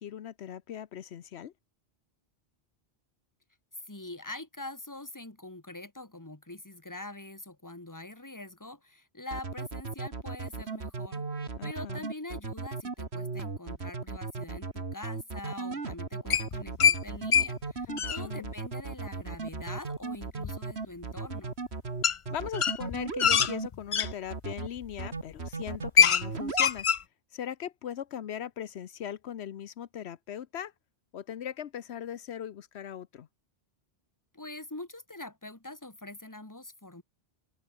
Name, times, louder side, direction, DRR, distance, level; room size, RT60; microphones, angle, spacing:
voice 1, 0.0-1.5 11.6-12.1 17.9-18.5 22.3-26.9 27.3-30.7 31.1-33.3, left 9 dB, 85° left, 1.1 m, -39 dB
voice 2, 3.9-11.2 11.6-21.5 34.3-37.0, left 2 dB, 15° left, 2.1 m, -44 dB
sound 1, 9.3-23.7 24.0-24.7 25.0-25.9 26.2-26.8, right 4 dB, 80° right, 2.5 m, -36 dB
sound 2, 16.3-17.0 17.3-17.5 17.8-18.2 20.4-20.5 22.0-22.2 22.5-24.1 24.8-25.0 25.4-25.5 25.7-26.2 26.5-27.0, left 7 dB, 45° left, 0.4 m, -23 dB
open air
omnidirectional pair, 1.1 m